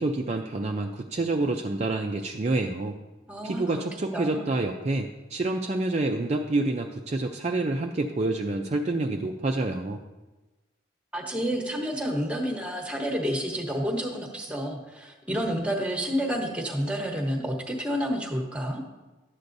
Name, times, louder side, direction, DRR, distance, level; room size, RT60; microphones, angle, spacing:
voice 1, 0.0-2.9 3.4-10.0, right 2 dB, 35° right, 3 dB, 0.4 m, -28 dB
voice 2, 3.3-3.8 4.1-4.5 11.1-18.8, equal, 5° right, 2 dB, 1.0 m, -29 dB
11.5 x 8.0 x 2.6 m, 1.1 s
head